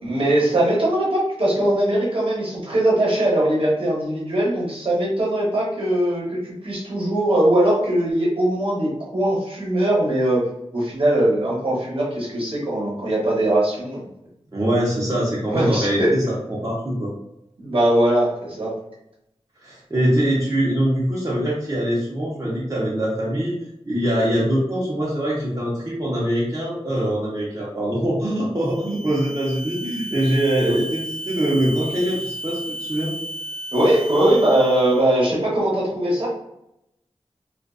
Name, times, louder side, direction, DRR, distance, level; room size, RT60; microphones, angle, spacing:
voice 1, 0.0-10.5 10.7-14.1 15.5-16.1 17.6-18.7 33.7-36.3, right 1 dB, 55° right, -5 dB, 1.0 m, -20 dB
voice 2, 14.5-17.1 19.6-23.6 23.8-33.1, right 1 dB, 30° right, -6 dB, 0.7 m, -23 dB
sound 1, 28.6-35.2, equal, 10° left, 0.6 m, -34 dB
2.4 x 2.2 x 2.4 m, 0.82 s
wide cardioid pair, 60°, 11 cm